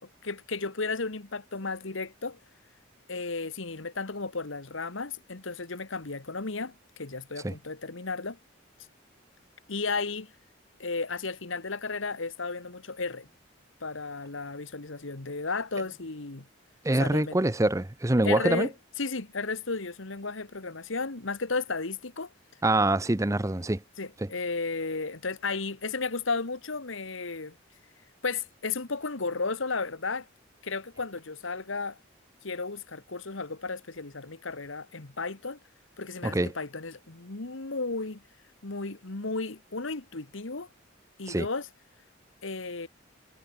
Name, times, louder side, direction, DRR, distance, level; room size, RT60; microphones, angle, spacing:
voice 1, 0.2-2.4 3.1-8.4 9.7-10.3 10.8-13.3 13.8-16.5 17.0-17.4 18.2-18.7 19.0-22.3 24.0-27.5 28.2-30.3 30.6-32.0 32.4-35.6 36.0-38.2 38.6-40.7 41.2-41.7 42.4-42.9, left 4 dB, 75° left, 1.6 m, -34 dB
voice 2, 16.8-18.7 22.6-23.8 24.2-24.3 36.2-36.5 41.3-41.5, right 1 dB, 15° right, 0.6 m, -25 dB
head